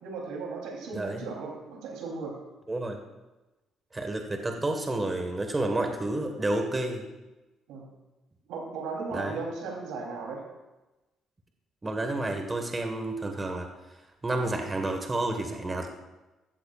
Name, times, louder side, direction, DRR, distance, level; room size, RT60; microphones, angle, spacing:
voice 1, 0.0-2.3 7.7-7.8 8.5-10.4, right 4 dB, 90° right, -1 dB, 3.4 m, -36 dB
voice 2, 0.9-1.2 2.7-3.0 3.9-7.0 9.1-9.4 11.8-13.7 14.2-15.9, right 2 dB, 20° right, 4 dB, 1.6 m, -30 dB
15.0 x 13.5 x 2.5 m, 1.1 s
cardioid pair, 95°, 0 cm